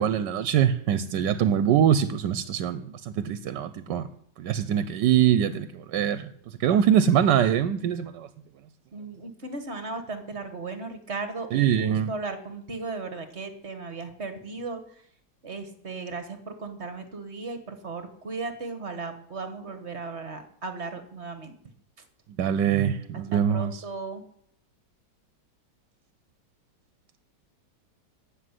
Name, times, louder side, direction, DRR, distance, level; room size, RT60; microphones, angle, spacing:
voice 1, 0.0-4.1 4.4-8.3 11.5-12.1 22.4-23.8, right 9 dB, 85° right, 1.4 m, -23 dB
voice 2, 8.9-15.0 15.4-21.6 23.3-24.2, right 3 dB, 40° right, 1.7 m, -36 dB
15.0 x 6.6 x 9.8 m
omnidirectional pair, 1.9 m